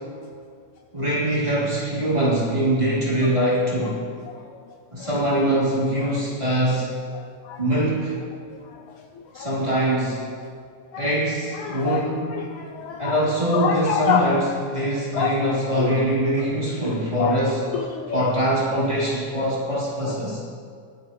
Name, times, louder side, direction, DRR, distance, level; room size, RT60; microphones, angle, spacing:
voice 1, 0.9-4.0 4.9-6.9 7.6-8.2 9.3-10.2 11.0-12.5 13.0-17.7 18.1-20.4, right 1 dB, 10° right, -10 dB, 3.1 m, -23 dB
voice 2, 11.6-12.0 12.3-13.2 13.5-14.3 15.1-15.3 15.8-15.9 17.2-17.4 17.9-18.2, left 8 dB, 75° left, 4 dB, 1.9 m, -25 dB
22.0 x 9.8 x 3.1 m, 2.2 s
omnidirectional pair, 3.7 m